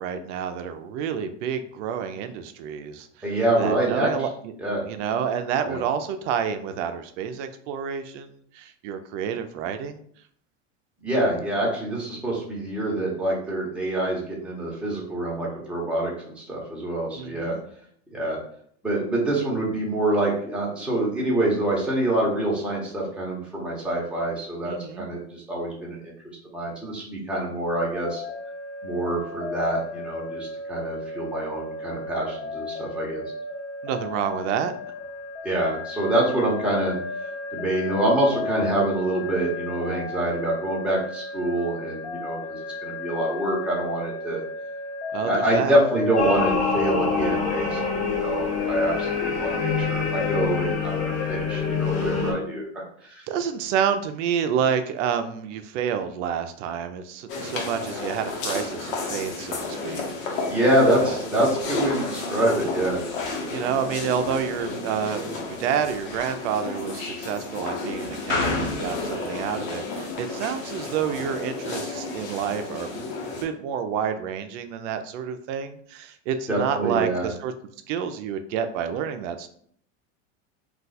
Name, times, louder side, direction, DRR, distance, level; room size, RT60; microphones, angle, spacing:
voice 1, 0.0-3.1 3.6-4.5 4.8-10.0 17.2-17.6 24.6-25.1 33.8-34.7 45.1-45.8 53.3-60.5 61.0-61.1 63.5-77.5 77.9-79.5, right 8 dB, 70° right, 8 dB, 0.5 m, -29 dB
voice 2, 3.2-4.1 4.6-4.8 5.7-5.8 11.0-17.6 18.1-18.4 18.8-26.1 26.5-28.2 28.8-33.2 35.4-36.9 37.5-44.4 45.2-52.6 53.0-53.2 60.5-63.0 76.5-77.3, right 1 dB, 5° right, -5 dB, 0.9 m, -26 dB
sound 1, 27.9-46.5, left 3 dB, 15° left, 0.5 m, -35 dB
sound 2, 46.2-52.3, left 5 dB, 40° left, 1.3 m, -25 dB
sound 3, 57.3-73.4, left 3 dB, 85° left, 1.0 m, -31 dB
2.4 x 2.3 x 4.0 m, 0.62 s
supercardioid pair, 120°, 38 cm